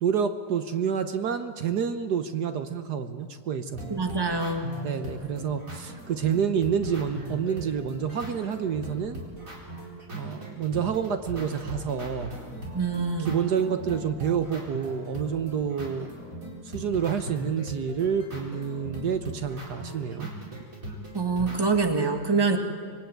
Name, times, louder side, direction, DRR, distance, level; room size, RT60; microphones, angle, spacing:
voice 1, 0.0-4.0 4.8-9.2 10.1-12.3 13.2-16.1 16.6-20.6, right 7 dB, 70° right, 9 dB, 1.6 m, -28 dB
sound 1, 3.7-21.6, right 1 dB, 50° right, 4.8 m, -40 dB
voice 2, 3.9-4.7 12.7-13.4 21.1-22.6, right 4 dB, 15° right, 5 dB, 1.8 m, -25 dB
25.5 x 22.0 x 9.1 m, 2.1 s
omnidirectional pair, 1.8 m